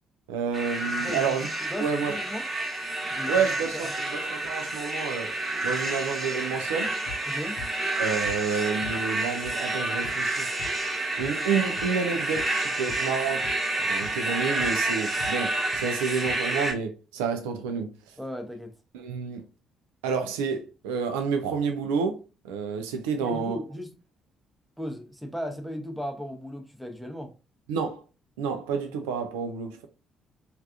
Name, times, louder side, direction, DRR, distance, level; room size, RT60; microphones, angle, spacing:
voice 1, 0.3-1.5 1.8-2.1 3.3-7.0 8.0-10.5 11.2-13.5 13.9-18.2 18.9-19.5 20.0-22.2 22.4-23.6 27.7-28.0 28.4-29.9, right 6 dB, 70° right, 0.4 m, -29 dB
sound 1, 0.5-16.7, right 2 dB, 25° right, 1.1 m, -29 dB
voice 2, 1.0-2.5 3.1-3.5 3.7-3.9 7.3-7.6 18.2-18.7 23.2-23.9 24.8-27.3, left 1 dB, ahead, 0.8 m, -36 dB
sound 2, 7.1-7.2 7.6-7.7 8.2-8.3 8.8-8.9 9.4-9.5 10.0-10.1 10.6-10.7 11.2-11.3 11.8-11.9 12.3-12.4 12.8-13.1 13.4-13.5 14.0-14.1 14.6-14.7 15.2-15.3 15.7-15.8 16.2-16.3, left 4 dB, 70° left, 0.6 m, -40 dB
3.2 x 2.4 x 2.5 m
figure-of-eight pair, 45°, 0 cm